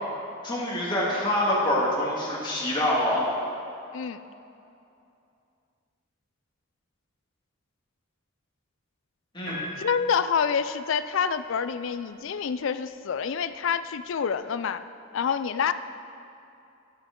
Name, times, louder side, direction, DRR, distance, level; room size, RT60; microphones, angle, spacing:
voice 1, 0.4-3.2 9.3-9.6, left 1 dB, 20° left, -5 dB, 1.9 m, -25 dB
Piano, 9.5-11.5 12.7-12.8, left 1 dB, 55° right, 2.1 m, -41 dB
voice 2, 9.8-14.8 15.1-15.7, left 6 dB, 65° left, 12 dB, 0.4 m, -27 dB
12.5 x 8.5 x 3.7 m, 2.7 s
head